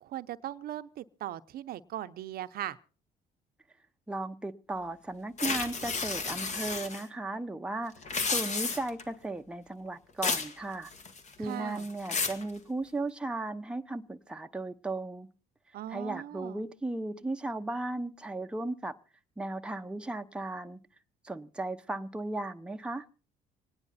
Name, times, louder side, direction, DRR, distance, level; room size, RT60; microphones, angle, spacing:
voice 1, 0.0-2.8 11.4-11.9 15.7-16.6, right 13 dB, 65° right, 0.7 m, -39 dB
voice 2, 4.1-7.9 8.3-10.9 11.4-15.3 15.9-19.0 19.4-20.8 21.2-23.0, right 2 dB, 5° right, 0.8 m, -36 dB
sound 1, 5.4-7.0 8.0-9.0 10.2-10.5 10.9-11.3 11.8-12.4, left 4 dB, 45° left, 1.8 m, -32 dB
26.0 x 9.7 x 4.1 m
cardioid pair, 110°, 17 cm